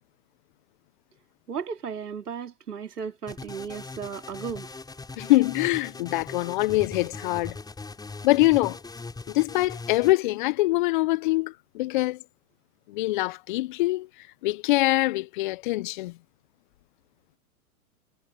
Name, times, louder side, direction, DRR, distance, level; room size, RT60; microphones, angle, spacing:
voice 1, 1.5-4.7, right 6 dB, 85° right, 3.8 m, -35 dB
sound 1, 3.3-10.1, left 3 dB, 10° left, 6.3 m, -40 dB
voice 2, 5.2-7.6 8.2-8.8 9.3-12.2 12.9-14.1 14.4-16.1, left 19 dB, 35° left, 0.5 m, -24 dB
hypercardioid pair, 120°, 45 cm